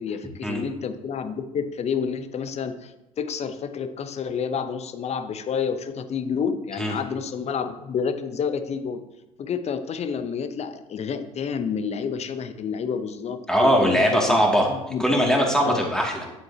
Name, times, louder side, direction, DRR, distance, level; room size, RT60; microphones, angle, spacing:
voice 1, 0.0-9.0 9.4-14.4 14.7-15.0 15.6-15.8, left 6 dB, 35° left, 10 dB, 0.8 m, -29 dB
voice 2, 13.5-14.7 15.0-16.3, equal, 5° left, -1 dB, 2.4 m, -20 dB
10.5 x 7.5 x 2.9 m, 0.96 s
figure-of-eight pair, 65°, 19 cm